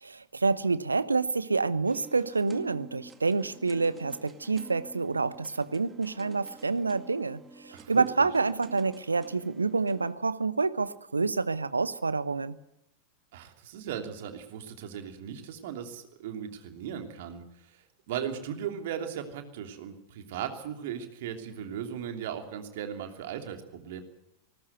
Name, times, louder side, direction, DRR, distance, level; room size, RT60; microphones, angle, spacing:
voice 1, 0.0-12.5, right 4 dB, 80° right, 16 dB, 0.9 m, -28 dB
sound 1, 1.8-10.1, right 3 dB, 15° right, 2.2 m, -50 dB
voice 2, 7.7-8.3 13.3-17.8 18.1-24.0, right 8 dB, 55° right, 5 dB, 3.0 m, -37 dB
19.5 x 19.0 x 8.1 m, 0.85 s
figure-of-eight pair, 90°, 0 cm